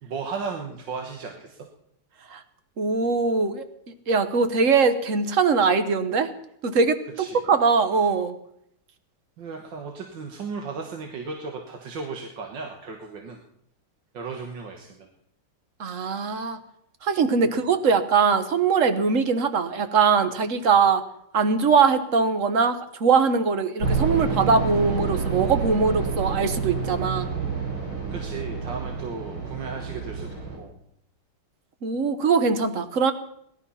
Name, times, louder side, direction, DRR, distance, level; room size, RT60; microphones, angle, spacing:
voice 1, 0.0-1.7 7.2-7.4 9.4-13.4 14.1-15.1 17.4-17.6 28.1-30.8, right 4 dB, 65° right, 2 dB, 2.0 m, -35 dB
voice 2, 2.8-3.6 4.1-6.3 6.6-7.0 7.5-8.3 15.8-16.6 17.0-21.0 21.3-27.3 31.8-33.1, right 5 dB, 45° right, 10 dB, 1.3 m, -21 dB
sound 1, 23.8-30.6, right 5 dB, 85° right, 5.2 m, -28 dB
18.5 x 12.0 x 5.7 m, 0.72 s
omnidirectional pair, 2.2 m